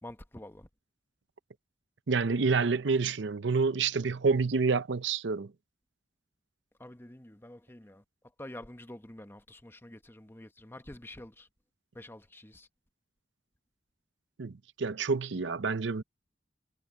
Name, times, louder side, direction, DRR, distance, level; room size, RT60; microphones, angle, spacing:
voice 1, 0.0-0.7 6.8-8.0 8.4-11.5 11.9-12.7, left 1 dB, 15° left, 1.0 m, -47 dB
voice 2, 2.1-5.5 14.4-16.0, right 4 dB, 70° right, 0.6 m, -28 dB
head